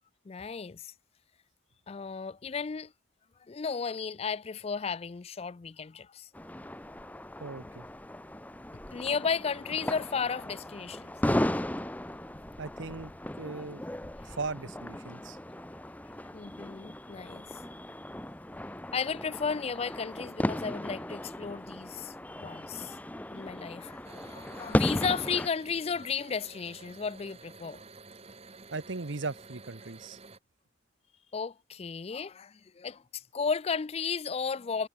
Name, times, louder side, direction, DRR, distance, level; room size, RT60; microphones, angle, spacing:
voice 1, 0.3-0.9 1.9-2.9 3.5-6.3 8.9-11.1 16.3-17.6 18.9-22.1 22.4-23.0 23.3-27.8 31.3-34.9, left 5 dB, 30° left, 0.4 m, -34 dB
sound 1, 6.3-25.5, left 1 dB, 10° left, 0.8 m, -36 dB
voice 2, 7.4-7.8 12.6-13.1 13.4-13.8 14.2-15.4 28.7-30.2, right 3 dB, 70° right, 1.1 m, -38 dB
sound 2, 24.0-30.4, right 3 dB, 30° right, 2.0 m, -51 dB
head